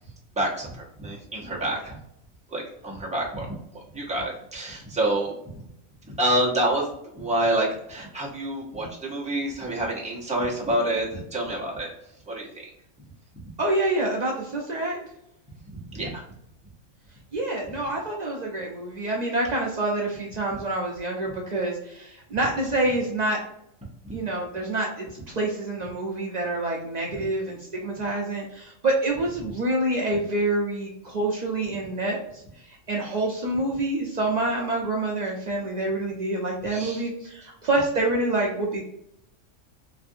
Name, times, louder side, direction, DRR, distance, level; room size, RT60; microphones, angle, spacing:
voice 1, 0.4-2.0 2.5-5.3 6.0-6.9 7.1-11.9 12.3-12.7 15.6-16.2 24.0-24.1 29.4-29.5 36.7-37.0, right 1 dB, 5° right, -4 dB, 0.6 m, -28 dB
voice 2, 13.6-15.0 17.3-23.4 24.1-38.8, right 2 dB, 80° right, -2 dB, 0.3 m, -27 dB
3.1 x 2.5 x 2.6 m, 0.77 s
omnidirectional pair, 1.5 m